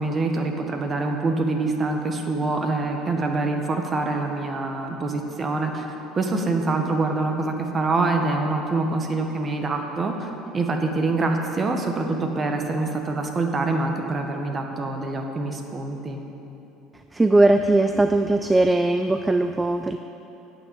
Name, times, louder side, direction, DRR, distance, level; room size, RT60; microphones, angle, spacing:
voice 1, 0.0-5.9 6.1-16.2, right 3 dB, 30° right, 3 dB, 1.3 m, -25 dB
voice 2, 17.1-20.0, right 2 dB, 15° right, 7 dB, 0.4 m, -19 dB
8.8 x 6.0 x 8.2 m, 3.0 s
hypercardioid pair, 80°, 0 cm